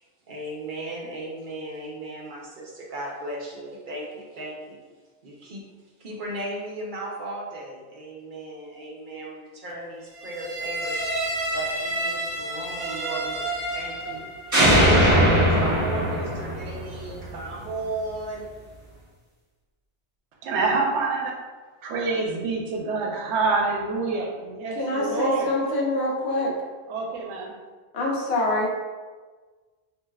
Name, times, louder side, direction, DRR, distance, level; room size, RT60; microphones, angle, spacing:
voice 1, 0.3-4.8 5.2-5.6 6.0-11.0 11.5-13.4 13.7-18.5, right 2 dB, 55° right, -2 dB, 0.7 m, -36 dB
sound 1, 10.4-14.2 14.5-17.5, equal, 15° right, 0.9 m, -23 dB
voice 2, 20.4-21.3 21.8-25.5 26.9-27.5, right 4 dB, 80° right, 0 dB, 0.9 m, -26 dB
voice 3, 24.8-26.5 27.9-28.8, left 1 dB, 75° left, -3 dB, 0.9 m, -25 dB
3.2 x 2.6 x 2.3 m, 1.4 s
omnidirectional pair, 1.1 m